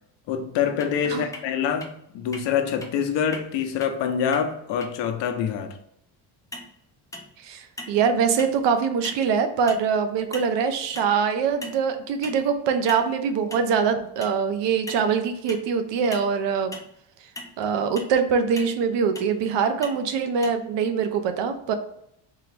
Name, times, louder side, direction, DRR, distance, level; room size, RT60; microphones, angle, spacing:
voice 1, 0.3-5.8, left 8 dB, 65° left, 0.8 m, -26 dB
sound 1, 0.8-0.9 1.3-1.5 1.8-1.9 2.3-2.4 2.8-2.9 3.3-3.4 3.8-3.9 4.3-4.5 4.8-4.9 6.5-6.7 7.1-7.4 7.8-8.0 8.4-8.6 9.0-9.3 9.7-9.8 10.3-10.6 11.0-11.1 11.6-11.9 12.2-12.4 12.9-13.1 13.5-13.7 14.2-14.4 14.9-15.0 15.5-15.7 16.1-16.3 16.7-16.9 17.4-17.5 18.0-18.1 18.6-18.8 19.2-19.3 19.8-20.0 20.4-20.5, left 1 dB, 10° left, 0.4 m, -39 dB
voice 2, 7.4-16.7 17.6-21.7, right 6 dB, 65° right, 0.7 m, -23 dB
3.8 x 2.9 x 3.3 m
cardioid pair, 145°, 46 cm